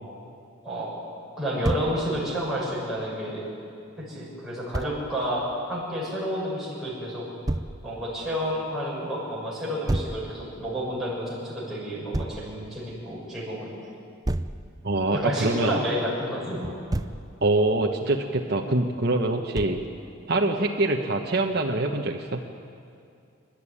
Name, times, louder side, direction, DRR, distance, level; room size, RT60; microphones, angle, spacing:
voice 1, 0.6-0.9 1.4-3.4 4.0-7.2 7.8-13.7 15.1-16.7, equal, ahead, -8 dB, 6.8 m, -30 dB
Thump thud, 1.6-1.9 4.7-4.9 7.5-7.7 9.9-10.2 12.1-12.4 14.3-14.6 16.6-17.2 19.6-19.9, right 1 dB, 20° right, 0.5 m, -28 dB
voice 2, 14.8-15.8 17.4-19.8 20.3-22.4, right 2 dB, 50° right, 1 dB, 1.1 m, -24 dB
27.5 x 12.0 x 9.9 m, 2.5 s
head